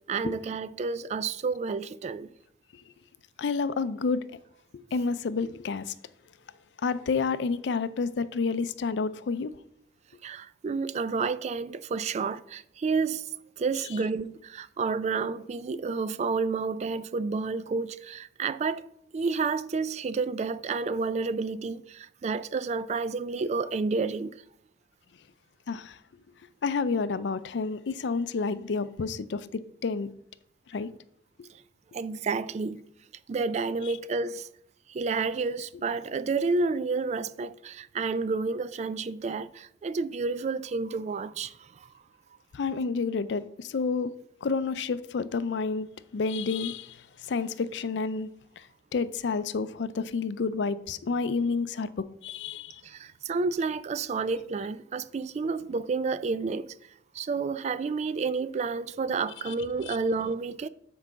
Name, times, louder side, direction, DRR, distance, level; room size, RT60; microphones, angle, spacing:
voice 1, 0.1-2.3 10.2-13.3 13.6-18.9 19.1-24.4 31.9-32.8 33.3-34.5 34.9-41.9 52.8-56.7 57.1-60.7, right 4 dB, 40° right, 0.3 m, -30 dB
voice 2, 3.4-4.4 4.7-5.9 6.8-9.5 25.7-26.0 26.6-30.1 30.7-30.9 31.4-31.5 42.5-44.1 44.4-48.3 48.6-48.7 48.9-52.8 59.5-59.6 59.9-60.0, left 4 dB, 80° left, 0.4 m, -30 dB
6.0 x 4.7 x 6.6 m
head